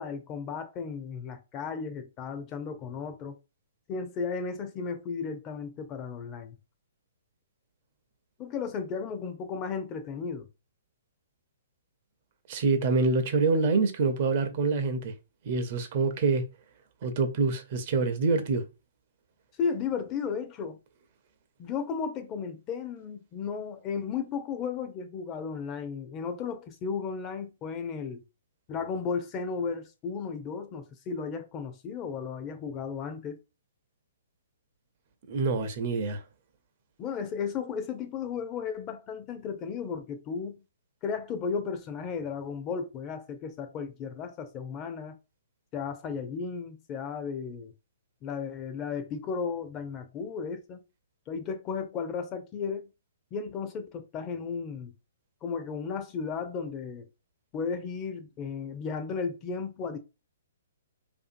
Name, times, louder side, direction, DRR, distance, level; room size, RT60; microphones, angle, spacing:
voice 1, 0.0-3.4 3.9-6.5 8.4-10.5 19.6-20.8 21.6-28.2 28.7-33.4 37.0-40.6 41.0-45.2 45.7-47.7 48.2-50.8 51.3-52.9 53.3-54.9 55.4-57.1 57.5-60.0, left 5 dB, 30° left, 0.5 m, -34 dB
voice 2, 12.5-15.1 15.4-16.4 17.0-18.6 35.3-36.2, right 4 dB, 50° right, 0.5 m, -26 dB
2.6 x 2.5 x 2.5 m
hypercardioid pair, 130°, 0 cm